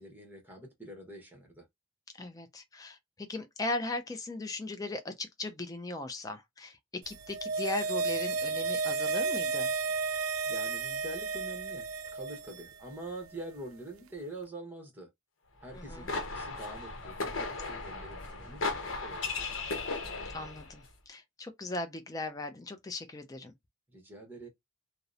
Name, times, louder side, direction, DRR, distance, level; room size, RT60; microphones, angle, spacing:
voice 1, 0.0-1.7 10.5-11.9 12.1-15.1 15.6-19.4 23.9-24.5, right 1 dB, 10° right, 0.9 m, -45 dB
voice 2, 2.2-9.7 15.7-16.1 20.3-23.5, left 2 dB, 15° left, 0.4 m, -38 dB
sound 1, 7.1-12.6 12.9-13.0, right 4 dB, 80° right, 0.4 m, -32 dB
sound 2, 15.7-20.7, left 3 dB, 65° left, 0.8 m, -36 dB
2.8 x 2.0 x 2.4 m
head